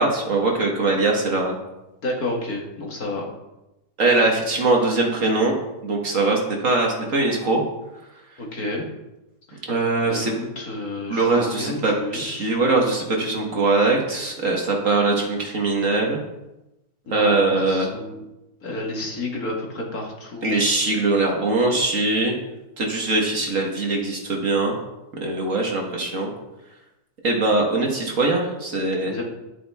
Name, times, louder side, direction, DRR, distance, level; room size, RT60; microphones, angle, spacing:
voice 1, 0.0-1.6 4.0-5.5 5.8-7.6 9.7-10.3 11.1-16.2 17.1-17.9 20.4-22.4 22.8-24.8 25.2-26.3 27.2-29.1, right 3 dB, 45° right, 1 dB, 1.6 m, -21 dB
voice 2, 2.0-3.3 8.4-8.8 10.0-12.6 17.1-18.2 18.6-20.6 29.0-29.2, left 2 dB, 55° left, 0 dB, 2.1 m, -31 dB
11.0 x 8.4 x 3.5 m, 0.97 s
omnidirectional pair, 2.0 m